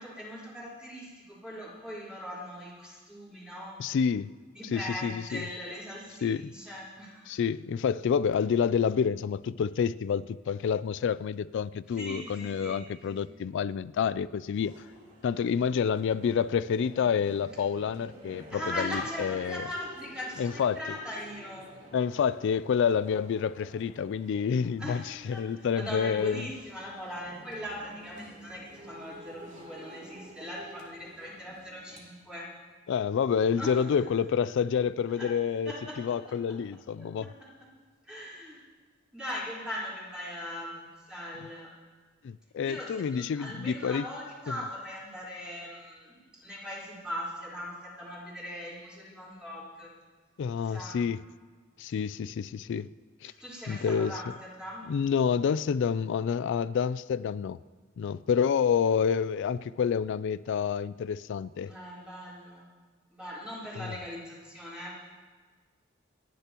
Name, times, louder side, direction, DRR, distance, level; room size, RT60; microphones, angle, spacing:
voice 1, 0.0-3.8 4.5-7.4 11.9-13.2 15.5-15.6 18.5-21.7 24.8-32.5 33.6-33.8 35.1-35.3 35.6-36.0 36.5-36.6 37.0-37.5 38.1-38.6 39.1-41.7 42.6-49.9 50.6-51.1 53.2-54.9 61.7-62.7 63.1-64.9, left 1 dB, 5° right, -8 dB, 4.2 m, -40 dB
voice 2, 3.8-4.3 4.7-5.5 6.2-6.5 7.3-14.8 15.2-19.6 20.4-20.8 21.9-26.5 32.9-35.7 36.0-37.3 42.2-44.1 44.5-44.6 50.4-51.2 51.8-52.9 53.2-53.3 53.7-54.2 54.9-57.6 58.0-61.7 63.8-63.9, left 7 dB, 60° left, 16 dB, 0.3 m, -28 dB
sound 1, 14.5-32.0, equal, 40° right, 2.8 m, -51 dB
28.5 x 10.0 x 3.0 m, 1.5 s
head